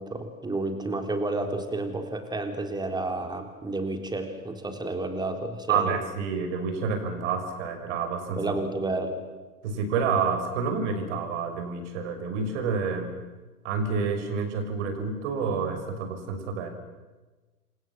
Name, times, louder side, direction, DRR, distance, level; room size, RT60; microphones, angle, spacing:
voice 1, 0.0-6.0 8.4-9.2, right 2 dB, 10° right, 6 dB, 3.7 m, -31 dB
voice 2, 5.7-8.5 9.6-13.1 13.6-16.7, right 5 dB, 50° right, 6 dB, 6.3 m, -28 dB
28.5 x 25.5 x 7.3 m, 1.2 s
figure-of-eight pair, 100°, 45 cm